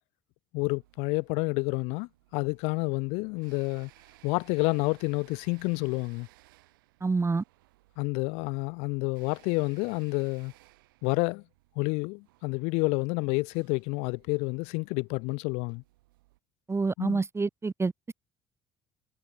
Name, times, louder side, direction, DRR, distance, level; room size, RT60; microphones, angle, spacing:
voice 1, 0.5-3.9 4.2-6.3 8.0-10.5 11.0-11.4 11.8-15.8 17.0-17.2, left 30 dB, 80° left, 0.9 m, -29 dB
sound 1, 0.7-16.4, right 19 dB, 90° right, 7.3 m, -61 dB
voice 2, 7.0-7.4 16.7-17.9, right 4 dB, 25° right, 1.3 m, -27 dB
hypercardioid pair, 65°, 11 cm